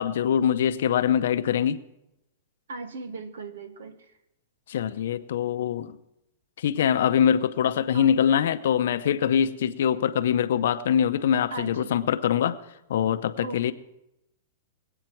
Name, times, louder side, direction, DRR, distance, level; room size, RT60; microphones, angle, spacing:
voice 1, 0.0-1.8 4.7-6.0 6.6-12.6 12.9-13.7, left 9 dB, 70° left, 12 dB, 0.7 m, -23 dB
voice 2, 2.7-4.1 7.9-8.1 11.5-11.9 13.4-13.7, right 3 dB, 85° right, 11 dB, 1.3 m, -38 dB
21.0 x 8.8 x 4.5 m, 0.90 s
hypercardioid pair, 155°, 0 cm